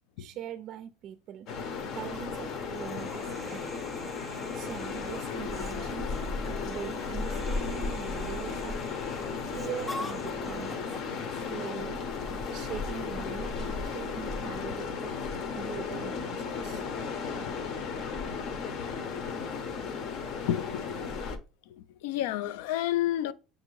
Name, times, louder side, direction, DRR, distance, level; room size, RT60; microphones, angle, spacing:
voice 1, 0.2-1.5 1.9-3.8 4.5-6.2 6.6-8.9 9.4-11.0 11.3-12.0 12.5-15.1 15.6-16.8, right 10 dB, 55° right, 0.4 m, -42 dB
sound 1, 1.5-21.4, left 5 dB, 60° left, 0.7 m, -35 dB
Chicken rooster, 1.6-14.5, left 2 dB, 20° left, 0.7 m, -49 dB
Human voice, 2.7-10.8, right 3 dB, 15° right, 0.6 m, -47 dB
voice 2, 20.5-21.2 21.7-23.3, left 12 dB, 80° left, 0.3 m, -31 dB
5.9 x 2.6 x 3.1 m
supercardioid pair, 105°, 0 cm